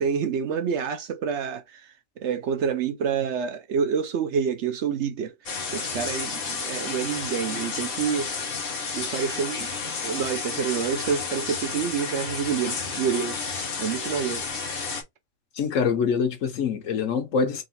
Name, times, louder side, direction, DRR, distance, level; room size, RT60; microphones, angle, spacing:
voice 1, 0.0-8.3 8.6-8.7 8.9-9.7 10.0-13.4 13.8-14.5, right 7 dB, 70° right, 0.9 m, -28 dB
sound 1, 5.5-15.0, left 5 dB, 50° left, 1.1 m, -31 dB
voice 2, 15.6-17.6, left 6 dB, 85° left, 1.2 m, -25 dB
3.7 x 2.4 x 4.1 m
omnidirectional pair, 1.3 m